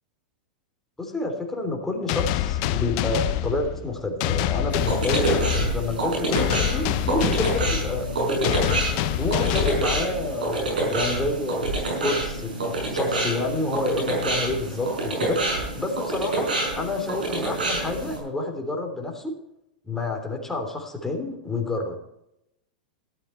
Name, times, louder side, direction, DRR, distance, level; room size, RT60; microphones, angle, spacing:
voice 1, 1.0-11.7 12.0-19.3 19.9-22.0, left 2 dB, 10° left, 2 dB, 3.3 m, -29 dB
sound 1, 2.1-10.5, left 12 dB, 50° left, 0.8 m, -26 dB
sound 2, 4.7-18.2, right 2 dB, 85° right, 5.4 m, -27 dB
13.0 x 12.0 x 4.5 m, 0.83 s
hypercardioid pair, 110°, 5 cm